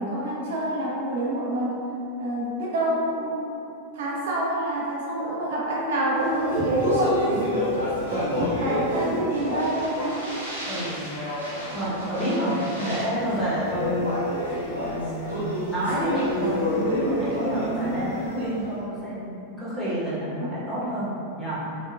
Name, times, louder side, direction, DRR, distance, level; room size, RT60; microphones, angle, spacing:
voice 1, 0.0-1.7 2.2-3.5 3.9-7.7 8.6-10.4 17.5-18.1, right 1 dB, 55° right, -4 dB, 0.7 m, -27 dB
Speech, 6.2-18.6, left 1 dB, 90° left, 1.0 m, -29 dB
voice 2, 8.1-8.5 10.7-11.1 11.4-14.2 14.8-21.1 21.4-21.6, equal, 10° right, -11 dB, 1.0 m, -29 dB
3.2 x 2.9 x 2.3 m, 2.7 s
figure-of-eight pair, 90°, 0 cm